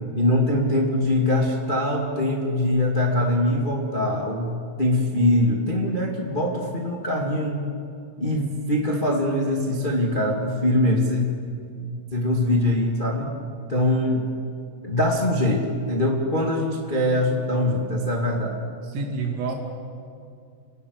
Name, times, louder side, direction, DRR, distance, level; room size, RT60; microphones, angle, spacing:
voice 1, 0.1-7.6 8.2-11.3 12.1-13.3 13.7-14.3 14.8-18.6, left 1 dB, 50° left, -1 dB, 0.6 m, -23 dB
voice 2, 18.8-19.5, right 4 dB, 65° right, 2 dB, 4.7 m, -28 dB
29.0 x 19.0 x 6.7 m, 2.3 s
omnidirectional pair, 5.7 m